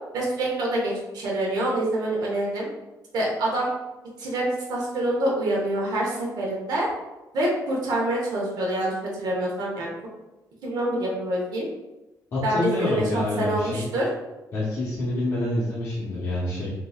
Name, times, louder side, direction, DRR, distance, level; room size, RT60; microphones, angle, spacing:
voice 1, 0.1-2.7 3.1-3.7 4.2-6.9 7.3-8.9 9.2-9.9 10.6-11.7 12.4-14.1, right 1 dB, 70° right, -2 dB, 1.0 m, -26 dB
voice 2, 12.3-13.9 14.5-16.7, left 1 dB, 45° left, -9 dB, 0.9 m, -27 dB
3.7 x 2.9 x 2.3 m, 1.0 s
cardioid pair, 135°, 7 cm